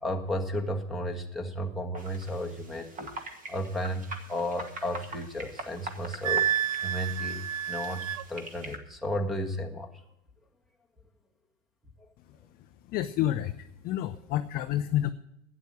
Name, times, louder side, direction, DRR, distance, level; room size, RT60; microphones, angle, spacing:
voice 1, 0.0-10.0 12.0-12.1, equal, ahead, 7 dB, 1.6 m, -34 dB
sound 1, 1.9-8.8, right 2 dB, 20° right, 2.0 m, -44 dB
Wind instrument woodwind instrument, 6.2-8.2, right 10 dB, 80° right, 0.8 m, -29 dB
voice 2, 12.2-15.1, left 12 dB, 25° left, 8 dB, 0.5 m, -30 dB
12.0 x 9.7 x 7.6 m, 0.80 s
supercardioid pair, 140°, 38 cm